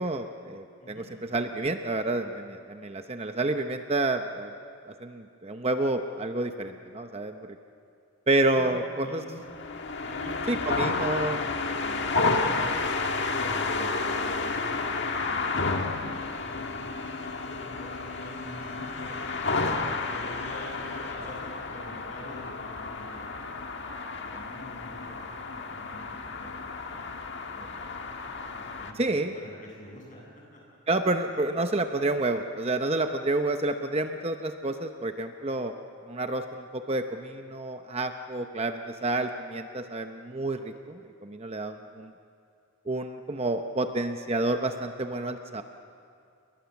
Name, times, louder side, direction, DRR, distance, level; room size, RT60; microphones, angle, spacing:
voice 1, 0.0-4.5 4.8-7.5 8.3-9.2 10.5-11.4 29.0-29.3 30.9-35.7 36.0-42.1 42.9-45.6, right 2 dB, 30° right, 6 dB, 0.8 m, -29 dB
voice 2, 8.5-9.4 10.0-11.5 11.8-12.7 13.3-15.3 15.8-19.6 20.1-23.5 24.2-27.1 27.5-28.0 28.5-30.3 30.5-30.6 31.3-31.5, left 1 dB, 35° left, -2 dB, 8.0 m, -46 dB
sound 1, 9.4-28.9, left 3 dB, 55° left, 1.6 m, -31 dB
29.0 x 22.0 x 7.2 m, 2.5 s
head